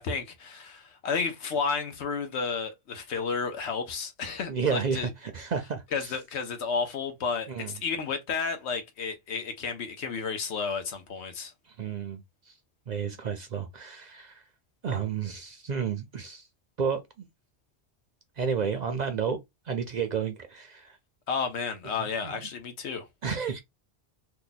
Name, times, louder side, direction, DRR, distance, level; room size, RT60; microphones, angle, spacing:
voice 1, 0.0-5.1 5.9-11.5 21.3-23.1, left 5 dB, 80° left, 1.1 m, -32 dB
voice 2, 4.5-6.1 7.5-7.7 11.7-12.5 12.9-14.4 14.8-16.5 16.8-17.3 18.4-19.4 19.7-21.0 22.0-22.3 23.2-23.6, right 6 dB, 55° right, 0.5 m, -31 dB
2.9 x 2.2 x 3.9 m
omnidirectional pair, 1.1 m